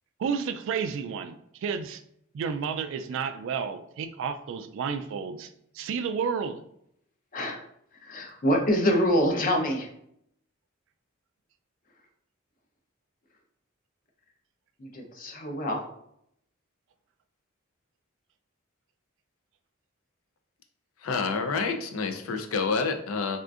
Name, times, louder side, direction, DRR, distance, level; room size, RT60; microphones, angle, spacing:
voice 1, 0.2-2.0 2.3-6.6, right 6 dB, 65° right, 10 dB, 0.3 m, -31 dB
voice 2, 7.3-7.6 8.0-9.9 14.8-15.9, equal, 45° left, 2 dB, 0.7 m, -26 dB
voice 3, 21.0-23.4, left 4 dB, 90° left, 6 dB, 0.4 m, -28 dB
3.6 x 2.5 x 2.4 m, 0.72 s
head